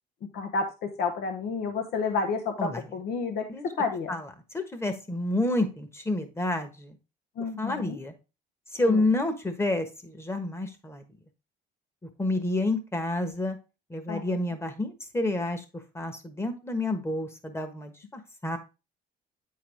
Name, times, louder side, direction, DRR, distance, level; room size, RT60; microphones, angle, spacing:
voice 1, 0.3-4.1 7.4-8.0 8.9-9.0 14.1-14.2, left 4 dB, 70° left, 4 dB, 1.0 m, -30 dB
voice 2, 4.5-7.0 7.6-8.1 8.7-11.0 12.2-13.6 13.9-18.6, left 2 dB, 15° left, 8 dB, 1.3 m, -29 dB
8.5 x 4.8 x 3.4 m, 0.29 s
cardioid pair, 110°, 17 cm